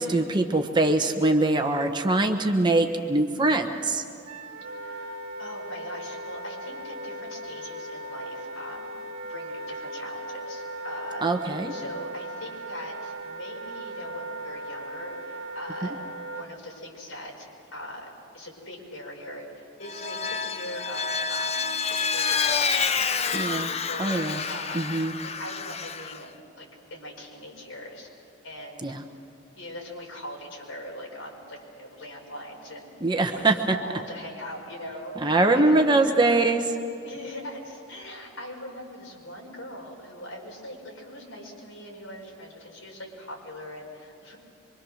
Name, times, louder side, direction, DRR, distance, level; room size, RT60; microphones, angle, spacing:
voice 1, 0.0-4.0 11.2-11.7 23.3-23.7 24.0-24.4 24.7-25.1 28.8-29.0 33.0-33.8 35.2-36.6, right 2 dB, 20° right, 4 dB, 1.2 m, -23 dB
Wind instrument woodwind instrument, 4.2-16.4, right 1 dB, 80° right, 1.6 m, -38 dB
voice 2, 4.8-8.9 9.3-11.3 11.7-16.0 16.3-18.1 18.3-24.9 25.2-26.3 26.6-28.1 28.4-29.0 29.6-33.0 33.3-36.4 37.0-44.4, left 1 dB, 75° left, -1 dB, 5.6 m, -41 dB
Vehicle, 19.8-26.2, left 5 dB, 30° left, 0.6 m, -28 dB
25.0 x 25.0 x 6.5 m, 2.7 s
head